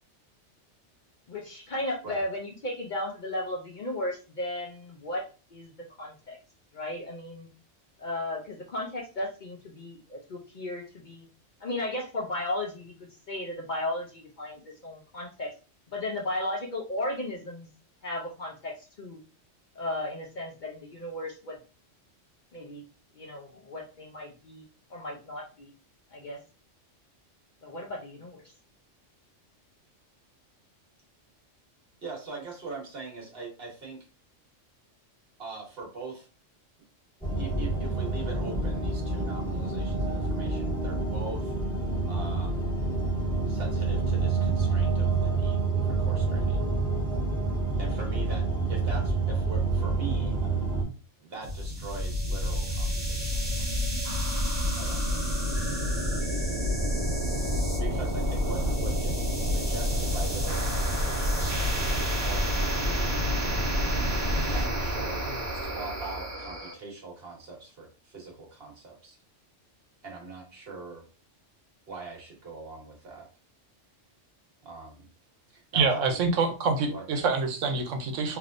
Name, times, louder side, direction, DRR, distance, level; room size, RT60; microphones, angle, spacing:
voice 1, 1.3-5.3 5.5-5.7 6.0-6.4 6.7-7.5 8.0-11.3 11.6-15.5 15.9-17.7 18.0-19.2 19.7-21.6 22.5-22.8 23.1-24.6 24.9-25.7 26.1-26.4 27.6-28.4, left 1 dB, 50° left, -2 dB, 0.6 m, -35 dB
voice 2, 32.0-34.1 35.4-36.3 37.4-41.5 42.1-42.7 43.5-46.6 47.8-50.6 51.2-53.7 54.8-55.4 57.4-63.3 64.4-69.2 70.0-71.0 71.9-73.3 74.6-75.1 75.5-76.2 76.9-77.0, right 4 dB, 55° right, -1 dB, 1.3 m, -42 dB
sound 1, 37.2-50.8, right 3 dB, 5° left, 1.4 m, -28 dB
sound 2, 51.4-66.7, equal, 35° right, 1.1 m, -28 dB
voice 3, 75.7-78.4, right 4 dB, 80° right, 5 dB, 1.0 m, -26 dB
3.3 x 2.8 x 2.5 m, 0.35 s
omnidirectional pair, 1.3 m